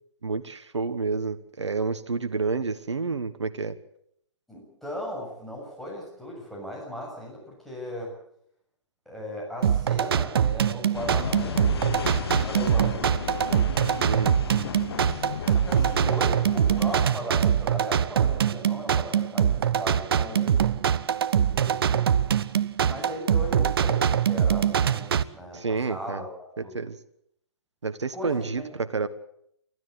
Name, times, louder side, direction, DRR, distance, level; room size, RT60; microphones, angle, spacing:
voice 1, 0.2-3.8 14.1-14.3 25.5-26.2 26.7-27.0 27.8-29.1, right 4 dB, 70° right, 11 dB, 1.4 m, -29 dB
voice 2, 4.5-8.1 9.1-12.0 12.4-13.0 13.4-13.7 14.5-20.9 21.5-22.2 22.8-26.7 28.1-28.6, equal, ahead, -3 dB, 7.1 m, -37 dB
sound 1, 9.6-25.2, right 8 dB, 50° right, 0.9 m, -23 dB
sound 2, 10.9-17.1, left 7 dB, 55° left, 2.0 m, -34 dB
29.5 x 13.0 x 7.9 m, 0.72 s
figure-of-eight pair, 120°, 15 cm